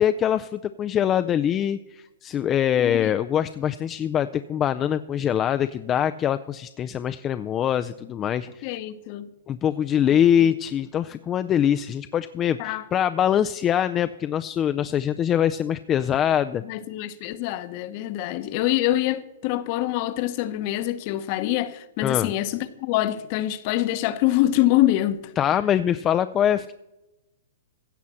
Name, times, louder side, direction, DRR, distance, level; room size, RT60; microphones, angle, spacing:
voice 1, 0.0-8.8 9.5-16.6 22.0-22.3 25.4-26.7, left 9 dB, 20° left, 0.4 m, -23 dB
voice 2, 2.8-3.1 8.6-9.3 10.4-10.5 12.6-12.8 16.6-25.3, left 14 dB, 40° left, 0.8 m, -25 dB
16.0 x 5.6 x 7.5 m
hypercardioid pair, 155°, 0 cm